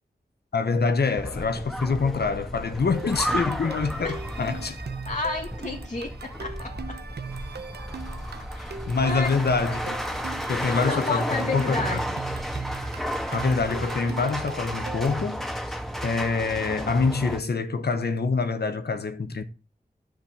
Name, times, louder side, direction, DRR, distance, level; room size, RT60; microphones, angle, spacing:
voice 1, 0.5-4.8 8.9-10.0 10.5-12.0 13.3-15.5 16.0-19.4, left 4 dB, 80° left, 1.2 m, -25 dB
sound 1, 1.2-17.4, equal, ahead, 1.8 m, -33 dB
sound 2, 2.9-15.2, right 5 dB, 90° right, 1.1 m, -40 dB
voice 2, 5.1-7.0 8.5-8.7 9.0-9.3 10.9-12.2, left 3 dB, 45° left, 2.1 m, -31 dB
10.5 x 6.4 x 8.0 m
cardioid pair, 50°, 17 cm